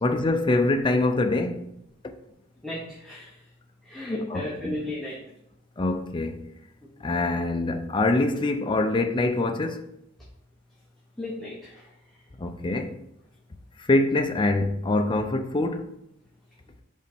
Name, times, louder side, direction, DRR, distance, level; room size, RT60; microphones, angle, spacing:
voice 1, 0.0-1.7 4.3-4.7 5.8-6.5 7.0-9.8 12.4-13.0 13.8-15.9, left 2 dB, 25° left, 0.5 m, -24 dB
voice 2, 2.6-3.3 3.8-5.2 11.2-11.8, left 1 dB, ahead, 1.1 m, -34 dB
5.3 x 4.0 x 5.3 m
head